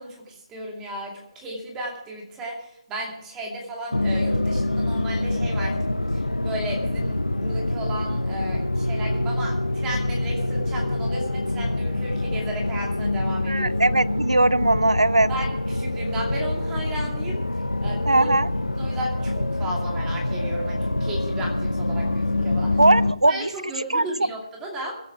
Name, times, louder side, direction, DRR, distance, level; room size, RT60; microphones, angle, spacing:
voice 1, 0.0-5.8 6.1-13.7 15.3-17.4 17.8-18.3 18.8-22.8 23.3-25.0, right 1 dB, 15° right, -1 dB, 2.6 m, -34 dB
sound 1, 3.9-23.1, left 2 dB, 85° left, 0.8 m, -25 dB
voice 2, 13.5-15.3 18.1-18.5 22.8-23.5 23.9-24.1, right 2 dB, 80° right, 20 dB, 0.5 m, -19 dB
23.0 x 8.5 x 4.7 m, 0.80 s
figure-of-eight pair, 145°, 3 cm